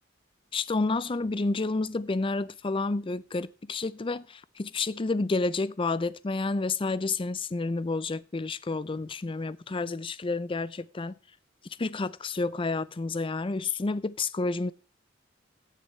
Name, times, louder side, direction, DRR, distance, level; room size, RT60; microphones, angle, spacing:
voice 1, 0.5-11.1 11.8-14.7, left 3 dB, 25° left, 0.5 m, -30 dB
17.0 x 6.7 x 3.1 m
head